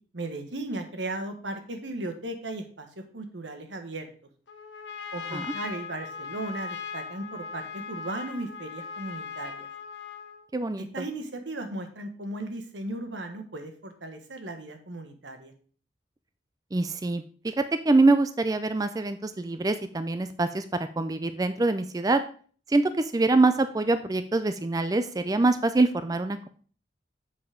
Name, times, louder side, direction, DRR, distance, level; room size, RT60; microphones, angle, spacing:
voice 1, 0.1-4.1 5.1-9.7 10.9-15.5, right 2 dB, 85° right, 6 dB, 1.4 m, -36 dB
Trumpet, 4.5-10.5, left 5 dB, 80° left, 1.0 m, -39 dB
voice 2, 10.5-10.9 16.7-22.2 22.7-26.5, right 2 dB, 20° right, 11 dB, 0.4 m, -24 dB
7.2 x 5.6 x 5.0 m, 0.43 s
head